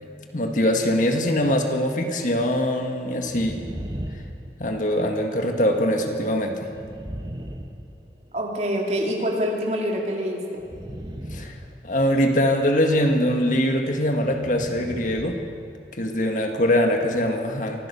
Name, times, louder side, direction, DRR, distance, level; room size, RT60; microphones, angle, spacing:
voice 1, 0.3-3.6 4.6-6.7 11.3-11.6 11.8-15.4 15.9-17.9, equal, 45° left, 4 dB, 1.8 m, -22 dB
sound 1, 3.2-5.1 6.6-8.5 10.6-12.3 14.3-15.6 15.8-15.9, equal, 25° right, 1.3 m, -37 dB
voice 2, 8.3-10.6, equal, 40° right, 0 dB, 3.1 m, -26 dB
24.5 x 16.0 x 7.0 m, 2.5 s
head